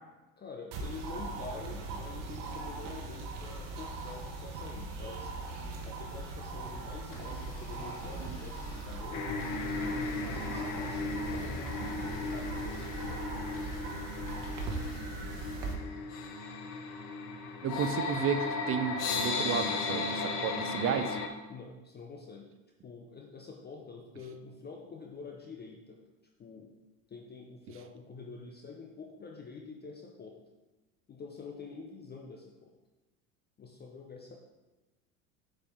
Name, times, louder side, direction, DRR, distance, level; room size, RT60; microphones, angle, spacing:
voice 1, 0.4-9.4 9.8-13.3 21.5-22.5 22.8-26.0 26.4-26.7 27.1-30.4 31.1-32.7 33.6-34.4, left 4 dB, 20° left, 1 dB, 0.6 m, -47 dB
sound 1, 0.7-15.7, right 3 dB, 50° right, 1.3 m, -40 dB
Domestic sounds home sounds, 7.1-15.0, left 5 dB, 90° left, 0.8 m, -55 dB
sound 2, 9.1-21.3, left 3 dB, 50° left, 1.0 m, -36 dB
voice 2, 17.6-21.2, right 7 dB, 30° right, 10 dB, 0.5 m, -32 dB
6.5 x 4.9 x 3.7 m, 1.1 s
hypercardioid pair, 80°, 49 cm